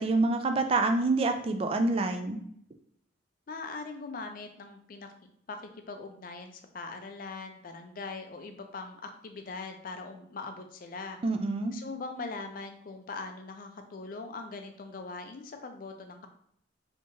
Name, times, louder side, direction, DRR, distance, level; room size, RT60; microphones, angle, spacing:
voice 1, 0.0-2.4 11.2-11.7, right 3 dB, 30° right, 6 dB, 0.3 m, -27 dB
voice 2, 3.5-5.1 5.5-11.2 11.7-16.3, left 3 dB, 45° left, 6 dB, 0.4 m, -41 dB
3.3 x 2.8 x 2.9 m, 0.68 s
head